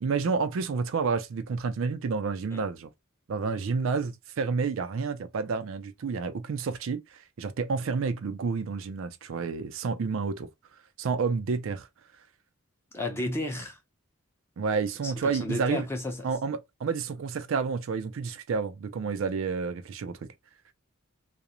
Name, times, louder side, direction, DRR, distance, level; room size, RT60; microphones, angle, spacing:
voice 1, 0.0-2.9 3.3-7.0 7.4-10.5 11.0-11.9 14.6-15.9 16.2-20.3, right 5 dB, 65° right, 0.4 m, -30 dB
voice 2, 12.9-13.8 15.0-16.3, left 2 dB, 10° left, 0.6 m, -33 dB
2.5 x 2.0 x 2.8 m
head